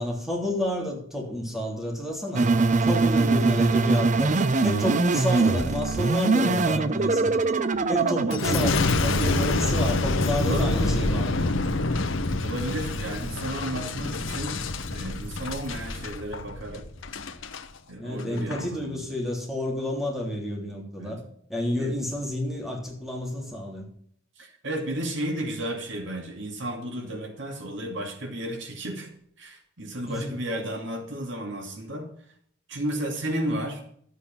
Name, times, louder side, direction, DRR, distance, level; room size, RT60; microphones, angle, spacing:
voice 1, 0.0-2.5 2.8-4.3 4.6-7.3 7.9-11.5 18.0-21.2 21.5-23.8 30.0-30.4, left 1 dB, ahead, -1 dB, 3.2 m, -30 dB
sound 1, 2.3-8.7, right 3 dB, 35° right, 0.7 m, -22 dB
Boom, 8.3-17.6 18.2-18.6, left 2 dB, 70° left, 1.1 m, -27 dB
voice 2, 10.4-11.0 12.4-14.6 14.9-16.9 17.9-19.0 20.9-21.1 21.8-22.0 24.4-29.1 29.4-32.1 32.7-34.0, right 1 dB, 60° right, 3 dB, 2.5 m, -33 dB
13.0 x 8.3 x 5.7 m, 0.63 s
head